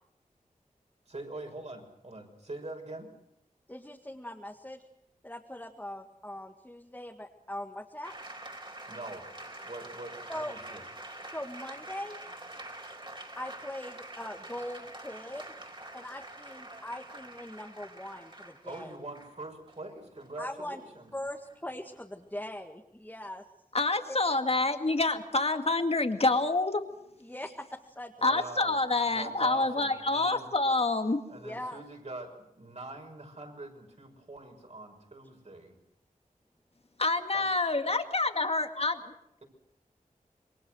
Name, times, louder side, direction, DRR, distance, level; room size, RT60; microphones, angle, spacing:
voice 1, 1.1-3.1 8.9-9.3 9.6-10.8 18.6-21.1 28.2-28.7 29.1-30.5 31.3-35.7 37.3-37.5, right 2 dB, 50° right, 3 dB, 6.3 m, -43 dB
voice 2, 3.7-4.8 5.2-8.1 10.3-10.5 11.3-12.2 13.4-15.5 15.9-18.9 20.4-20.8 21.1-23.4 24.1-24.2 27.2-28.1 31.4-31.8, left 1 dB, 10° left, 2 dB, 1.9 m, -41 dB
sound 1, 8.0-22.5, right 1 dB, 35° right, 4.7 m, -46 dB
voice 3, 23.7-26.8 28.2-31.2 37.0-39.1, left 2 dB, 45° left, 7 dB, 2.2 m, -27 dB
27.5 x 22.5 x 6.4 m, 0.81 s
wide cardioid pair, 70°, 14 cm